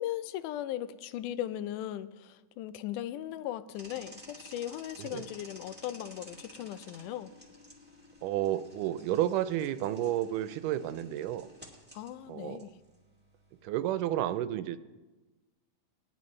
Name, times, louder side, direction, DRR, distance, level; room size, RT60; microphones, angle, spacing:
voice 1, 0.0-7.3 11.9-12.7, left 12 dB, 80° left, 14 dB, 2.0 m, -38 dB
sound 1, 3.7-14.1, equal, 5° right, 1.0 m, -53 dB
voice 2, 8.2-11.5 12.3-12.7 13.6-14.8, right 12 dB, 85° right, 12 dB, 2.1 m, -31 dB
19.5 x 10.5 x 3.2 m, 1.2 s
omnidirectional pair, 3.7 m